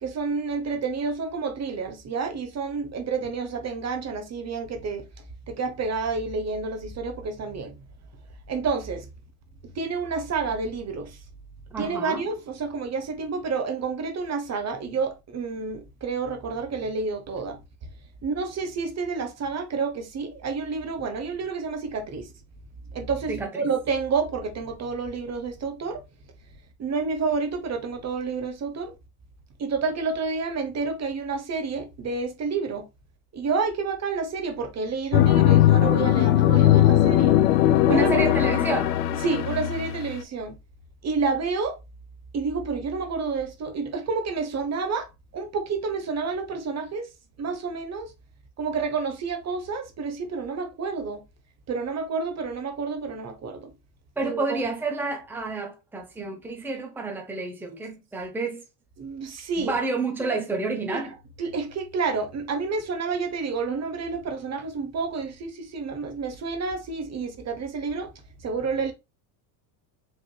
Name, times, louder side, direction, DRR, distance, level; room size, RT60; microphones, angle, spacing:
voice 1, 0.0-5.1 5.5-7.8 8.5-9.1 9.7-11.2 11.8-17.6 18.2-22.3 22.9-26.0 26.8-28.9 29.6-32.8 33.3-37.4 37.8-38.2 39.2-40.6 41.0-41.8 42.3-47.1 47.4-48.1 48.6-51.2 51.7-53.7 54.2-54.6 59.0-59.8 60.2-60.4 60.9-61.0 61.4-68.1 68.4-68.9, right 4 dB, 35° right, 1.0 m, -29 dB
voice 2, 11.7-12.2 23.3-23.7 37.8-39.0 54.2-58.6 59.6-61.1, right 3 dB, 5° right, 0.9 m, -29 dB
sound 1, 35.1-40.1, left 13 dB, 85° left, 0.6 m, -19 dB
5.0 x 3.6 x 2.3 m
supercardioid pair, 110°, 47 cm